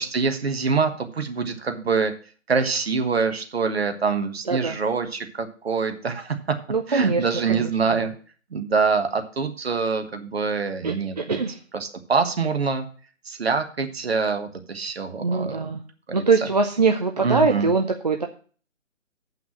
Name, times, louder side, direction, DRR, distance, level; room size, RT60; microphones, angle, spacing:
voice 1, 0.0-2.1 2.5-6.4 6.9-8.1 8.5-11.4 11.8-12.9 13.2-15.6 17.2-17.7, right 5 dB, 50° right, 7 dB, 1.4 m, -25 dB
voice 2, 4.5-4.8 6.7-8.1 10.8-11.6 15.2-15.8 16.1-18.3, right 4 dB, 35° right, 4 dB, 0.6 m, -23 dB
7.8 x 5.8 x 7.3 m, 0.41 s
figure-of-eight pair, 145°, 39 cm